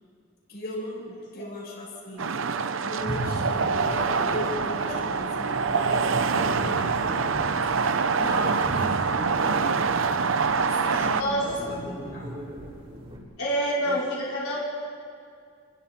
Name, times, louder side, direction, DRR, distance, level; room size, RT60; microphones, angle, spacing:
voice 1, 0.5-2.3 2.8-7.3 8.2-9.3 10.6-12.3 13.8-14.0, left 1 dB, 45° left, -4 dB, 6.9 m, -37 dB
sound 1, 2.2-11.2, right 5 dB, 65° right, 0.7 m, -25 dB
sound 2, 3.0-13.2, right 1 dB, 30° right, 4.0 m, -37 dB
voice 2, 11.2-11.7 13.4-14.6, right 1 dB, 85° left, -7 dB, 4.9 m, -27 dB
29.0 x 22.5 x 4.4 m, 2.3 s
head